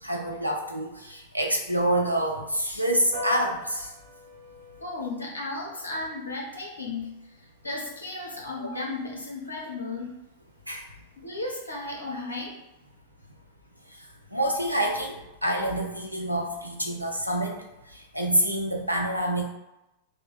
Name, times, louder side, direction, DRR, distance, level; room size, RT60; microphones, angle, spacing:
voice 1, 0.0-3.9 10.7-10.8 14.3-17.6 17.9-19.4, right 1 dB, 90° right, 1 dB, 0.5 m, -27 dB
Piano, 3.1-12.9, left 3 dB, 50° right, 1.0 m, -46 dB
voice 2, 4.8-7.1 7.4-10.2 11.2-12.6, left 2 dB, 80° left, -2 dB, 0.9 m, -34 dB
3.3 x 2.2 x 3.7 m, 0.94 s
figure-of-eight pair, 90°, 0 cm